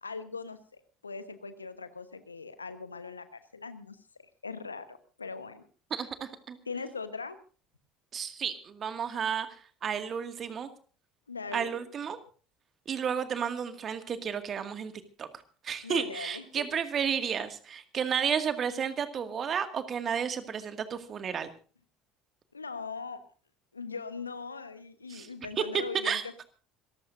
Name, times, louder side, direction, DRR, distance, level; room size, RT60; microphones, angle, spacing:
voice 1, 0.0-4.0 4.4-5.6 6.6-7.4 11.3-11.8 15.8-16.6 22.5-23.2 23.7-26.4, left 4 dB, 90° left, 12 dB, 1.1 m, -40 dB
voice 2, 5.9-6.6 8.1-9.5 9.8-10.7 11.5-12.2 12.9-14.9 15.2-15.3 15.6-21.5 25.1-25.3 25.6-25.7 26.0-26.2, right 7 dB, 40° right, 9 dB, 2.0 m, -32 dB
26.5 x 14.5 x 2.6 m, 0.39 s
figure-of-eight pair, 65°, 0 cm